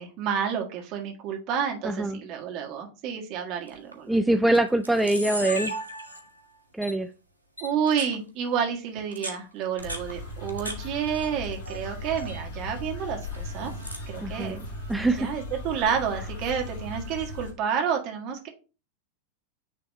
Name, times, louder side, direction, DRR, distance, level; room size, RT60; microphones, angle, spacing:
voice 1, 0.0-4.2 7.6-13.7 14.1-14.6 15.2-18.5, right 7 dB, 40° right, 2 dB, 1.7 m, -30 dB
voice 2, 1.8-2.2 4.1-5.7 6.7-7.1 14.2-15.3, right 2 dB, 5° right, 6 dB, 0.4 m, -24 dB
Camera, 3.7-3.9 4.5-4.6 4.8-6.4 6.8-6.9 7.6-8.1 9.0-10.8 11.1-11.8 12.1-12.4 13.2-14.1, right 1 dB, 90° left, 1.1 m, -36 dB
sound 1, 9.8-17.5, left 2 dB, 55° left, 2.5 m, -37 dB
9.1 x 3.4 x 3.2 m, 0.33 s
figure-of-eight pair, 90°, 0 cm